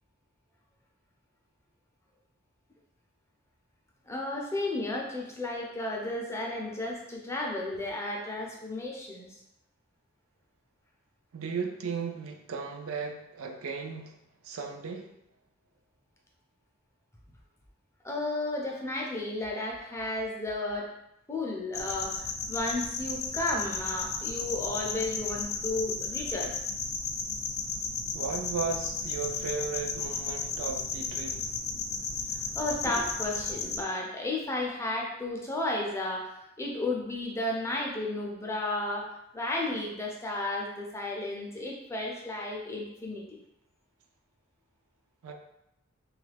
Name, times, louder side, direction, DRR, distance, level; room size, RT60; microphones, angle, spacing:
voice 1, 4.1-9.4 18.0-20.9 21.3-26.5 32.6-43.2, left 2 dB, 15° left, -1 dB, 0.5 m, -33 dB
voice 2, 11.3-14.2 14.4-15.1 28.1-31.4 45.2-45.3, right 5 dB, 80° right, 3 dB, 0.4 m, -35 dB
sound 1, 21.7-33.8, left 4 dB, 80° left, 0.5 m, -34 dB
3.0 x 2.4 x 3.3 m, 0.83 s
head